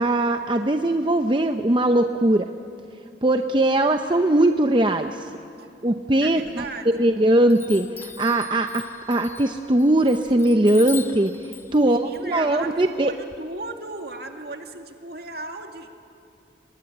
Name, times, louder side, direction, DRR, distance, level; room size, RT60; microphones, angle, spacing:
voice 1, 0.0-2.5 3.2-5.3 5.8-6.6 7.0-8.8 9.1-13.1, right 1 dB, 25° right, 6 dB, 0.7 m, -20 dB
voice 2, 6.2-7.1 11.8-15.9, right 2 dB, 55° right, 4 dB, 2.1 m, -36 dB
Chime, 6.5-7.1 7.5-13.4, left 5 dB, 15° left, 1.0 m, -41 dB
25.5 x 22.0 x 10.0 m, 2.4 s
head